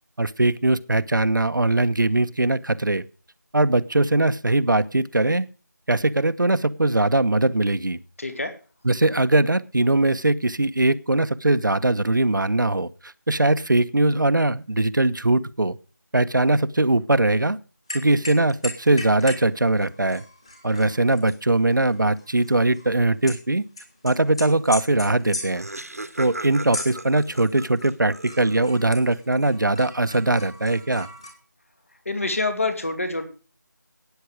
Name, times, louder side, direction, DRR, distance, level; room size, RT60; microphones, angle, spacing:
voice 1, 0.2-3.0 3.5-5.4 5.9-8.0 8.8-15.8 16.1-17.6 17.9-20.2 20.6-23.6 24.0-25.7 26.2-31.1, right 2 dB, 75° right, 12 dB, 1.0 m, -21 dB
voice 2, 8.2-8.5 32.1-33.3, left 3 dB, 45° left, 7 dB, 2.6 m, -26 dB
sound 1, 17.9-19.5 19.8-23.4 23.8-27.9 28.2-31.3, left 2 dB, 15° left, 1.8 m, -38 dB
Laughter, 25.2-28.9, right 2 dB, 50° right, 1.2 m, -37 dB
13.0 x 9.4 x 4.9 m, 0.36 s
figure-of-eight pair, 175°, 10 cm